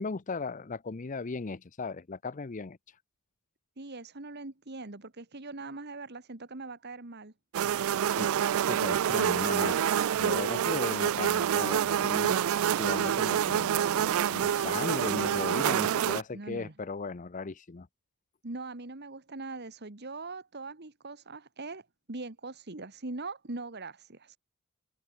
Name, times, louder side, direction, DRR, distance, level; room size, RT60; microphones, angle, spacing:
voice 1, 0.0-2.8 8.1-8.3 8.6-9.8 10.2-12.4 12.8-17.9, left 4 dB, 35° left, 0.6 m, -36 dB
voice 2, 3.8-7.3 16.3-16.7 18.4-21.8 22.1-24.4, right 3 dB, 50° right, 1.7 m, -41 dB
sound 1, 7.5-16.2, right 9 dB, 70° right, 0.3 m, -27 dB
head